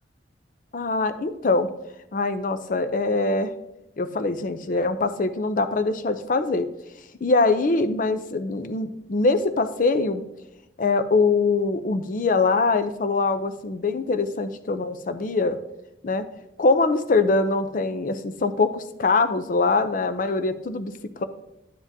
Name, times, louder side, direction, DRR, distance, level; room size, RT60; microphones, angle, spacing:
voice 1, 0.7-1.7 2.1-3.5 4.0-6.7 7.2-10.2 10.8-15.6 16.0-16.3 16.6-20.9 21.2-21.3, left 3 dB, 45° left, 10 dB, 0.5 m, -23 dB
11.0 x 7.3 x 2.7 m, 0.89 s
head